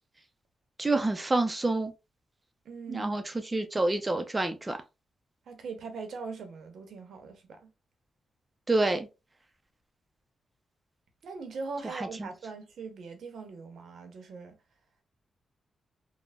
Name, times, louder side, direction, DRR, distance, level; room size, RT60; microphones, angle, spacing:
voice 1, 0.8-1.9 2.9-3.2 3.5-4.8 8.7-9.1 11.9-12.3, right 2 dB, 20° right, 0.4 m, -27 dB
voice 2, 2.6-3.2 5.5-7.7 11.2-14.6, right 4 dB, 75° right, 0.7 m, -41 dB
3.2 x 2.0 x 2.3 m
cardioid pair, 100°, 0 cm